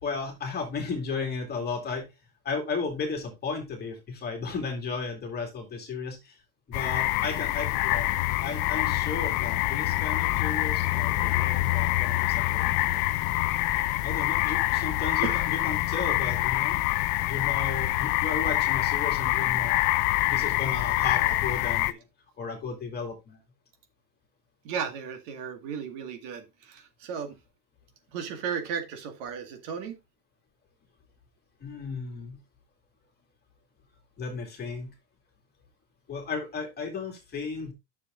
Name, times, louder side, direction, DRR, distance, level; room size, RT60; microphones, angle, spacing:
voice 1, 0.0-2.1 2.4-6.4 6.7-8.0 8.4-13.0 14.0-16.8 17.3-19.8 20.3-22.0 22.4-23.4 31.6-32.4 34.2-34.9 36.1-37.7, left 4 dB, 20° left, 3 dB, 2.5 m, -34 dB
sound 1, 6.7-21.9, left 17 dB, 35° left, 0.4 m, -26 dB
voice 2, 24.6-27.4 28.1-29.9, right 7 dB, 55° right, 6 dB, 2.0 m, -35 dB
10.0 x 6.9 x 2.5 m, 0.22 s
supercardioid pair, 140°, 46 cm